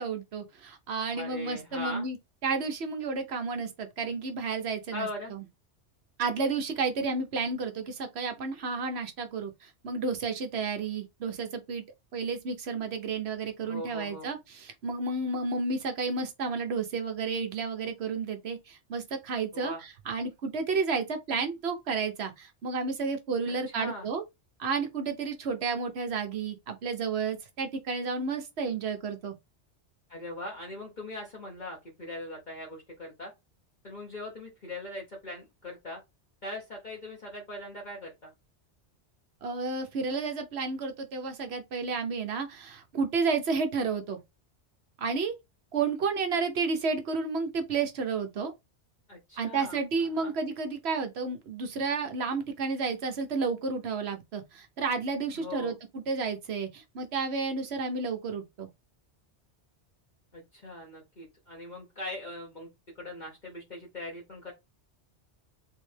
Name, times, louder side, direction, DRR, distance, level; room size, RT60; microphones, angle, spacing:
voice 1, 0.0-2.2 2.4-5.4 6.2-11.8 12.1-19.7 20.1-24.2 24.6-29.3 39.4-44.2 45.0-45.3 45.7-48.5 49.4-58.7, right 4 dB, 70° right, 1.1 m, -31 dB
voice 2, 1.1-2.1 4.9-5.3 13.6-14.3 19.5-19.8 23.5-24.1 30.1-33.3 33.8-36.0 36.4-38.3 49.1-50.3 55.3-55.8 60.3-62.7 63.0-64.5, left 1 dB, 45° left, 1.1 m, -40 dB
3.5 x 3.2 x 3.3 m
omnidirectional pair, 1.2 m